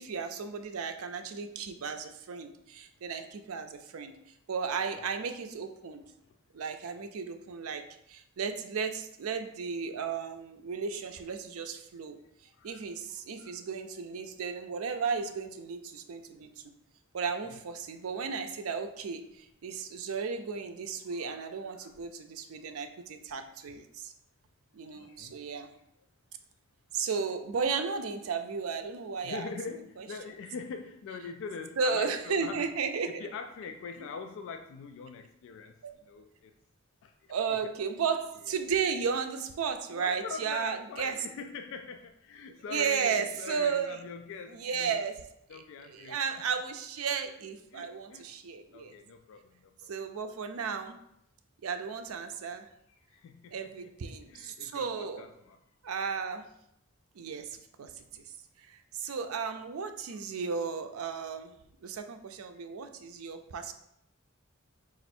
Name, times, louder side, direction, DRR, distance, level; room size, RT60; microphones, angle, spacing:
voice 1, 0.0-4.1 4.5-6.0 6.5-12.2 12.6-16.6 17.1-24.1 24.7-25.7 26.9-29.5 30.0-30.1 31.8-33.1 37.3-41.1 42.7-44.0 44.5-45.2 45.5-48.9 49.9-51.0 51.6-52.7 53.5-55.2 55.8-56.5 57.2-58.3 58.6-61.5 61.8-63.7, right 5 dB, 85° right, 7 dB, 0.4 m, -34 dB
voice 2, 21.0-21.4 21.7-21.9 23.6-23.8 24.9-25.3 29.2-32.7 33.0-35.7 36.0-36.5 37.0-37.1 37.5-37.6 38.4-38.6 39.9-44.9 45.5-46.2 47.7-48.3 48.7-49.9 53.1-53.9 54.3-55.6 60.1-60.2, left 5 dB, 65° left, 5 dB, 0.3 m, -43 dB
4.2 x 2.5 x 4.2 m, 0.78 s
head